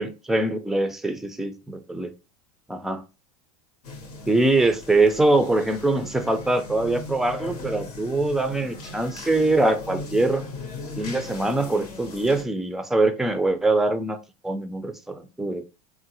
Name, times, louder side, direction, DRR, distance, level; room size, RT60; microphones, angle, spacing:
voice 1, 0.0-2.1 2.7-3.0 4.3-10.4 11.0-14.2 14.4-15.7, right 2 dB, ahead, 0.4 m, -23 dB
sound 1, 3.8-12.4, left 2 dB, 90° left, 0.8 m, -38 dB
3.7 x 2.0 x 2.8 m
hypercardioid pair, 95°, 19 cm